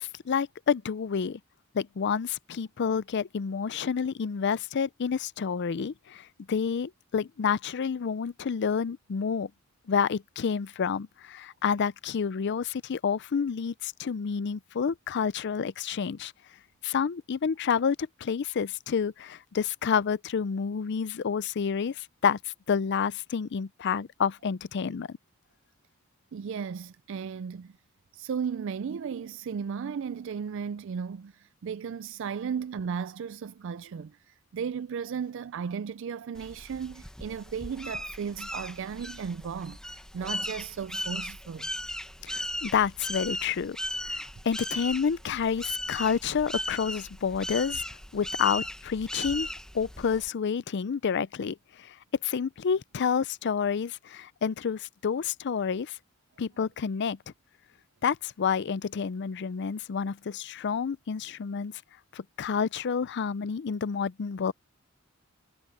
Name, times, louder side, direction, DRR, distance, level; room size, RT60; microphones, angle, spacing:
voice 1, 0.0-1.4 1.7-9.5 9.9-16.3 16.8-25.2 42.2-47.8 48.1-49.5 49.7-52.0 52.2-56.0 56.4-57.2 58.0-61.7 62.1-64.5, left 6 dB, 55° left, 0.4 m, -29 dB
voice 2, 26.3-27.7 28.1-41.7, right 6 dB, 65° right, 0.4 m, -35 dB
sound 1, 36.3-50.3, left 1 dB, 5° left, 1.3 m, -37 dB
head